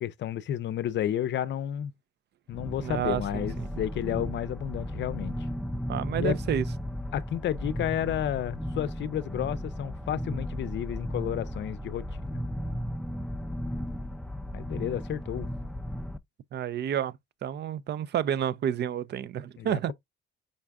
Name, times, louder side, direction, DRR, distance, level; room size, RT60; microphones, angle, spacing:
voice 1, 0.0-1.9 2.5-5.5 6.2-6.4 7.1-12.4 14.5-15.5 19.6-19.9, left 11 dB, 65° left, 0.5 m, -31 dB
sound 1, 2.5-16.2, equal, 5° left, 0.4 m, -35 dB
voice 2, 2.8-3.7 5.9-6.6 16.5-17.1 17.4-19.9, right 10 dB, 60° right, 0.5 m, -30 dB
5.3 x 2.4 x 3.4 m
cardioid pair, 90°, 20 cm